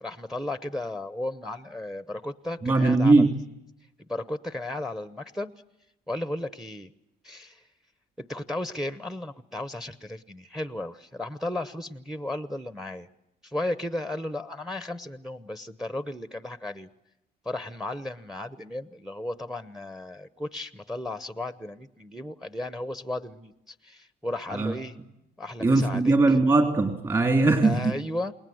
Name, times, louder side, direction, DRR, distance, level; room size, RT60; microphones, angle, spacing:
voice 1, 0.0-3.3 4.1-5.5 6.1-6.9 7.2-7.6 8.2-13.1 13.4-16.9 17.4-24.9 25.4-26.1 27.6-28.3, left 1 dB, ahead, 12 dB, 0.9 m, -34 dB
voice 2, 2.6-3.3 24.5-24.7 25.6-28.0, right 3 dB, 25° right, 3 dB, 2.8 m, -20 dB
29.0 x 20.5 x 7.8 m, 0.88 s
cardioid pair, 110°, 17 cm